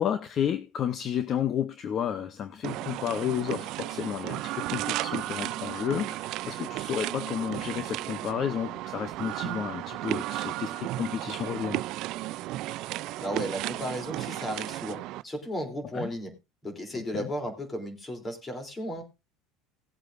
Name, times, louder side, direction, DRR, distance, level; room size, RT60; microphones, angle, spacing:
voice 1, 0.0-11.8 15.9-16.1 17.1-17.3, left 9 dB, 40° left, 0.9 m, -31 dB
sound 1, 2.6-15.2, right 17 dB, 60° right, 0.5 m, -34 dB
voice 2, 13.2-16.3 16.6-19.0, equal, 20° left, 3.4 m, -34 dB
18.5 x 8.1 x 2.6 m
supercardioid pair, 120°, 0 cm